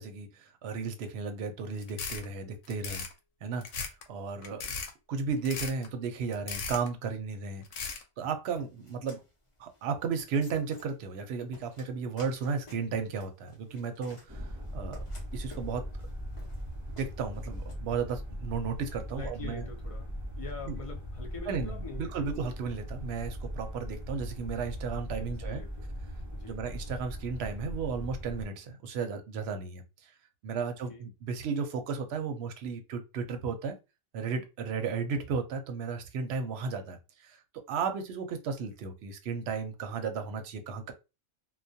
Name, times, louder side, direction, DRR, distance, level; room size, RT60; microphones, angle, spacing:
voice 1, 0.0-3.1 3.4-3.7 4.1-4.7 5.1-7.6 8.2-9.2 9.6-14.5 14.7-15.0 15.3-15.9 16.9-19.6 20.7-20.8 21.5-25.6 26.4-29.8 30.4-33.8 34.1-37.4 37.7-40.9, right 5 dB, 65° right, 0.8 m, -34 dB
sound 1, 1.8-2.2 2.6-3.1 3.6-4.0 4.4-4.9 5.4-5.9 6.3-6.9 7.6-8.0, left 5 dB, 85° left, 0.9 m, -36 dB
sound 2, 8.5-17.7, left 1 dB, 30° left, 0.7 m, -54 dB
sound 3, 14.3-28.5, equal, 25° right, 0.4 m, -39 dB
voice 2, 19.1-22.3 25.2-25.9 26.3-26.6 30.6-31.1, left 4 dB, 55° left, 0.4 m, -44 dB
2.3 x 2.1 x 2.6 m
omnidirectional pair, 1.3 m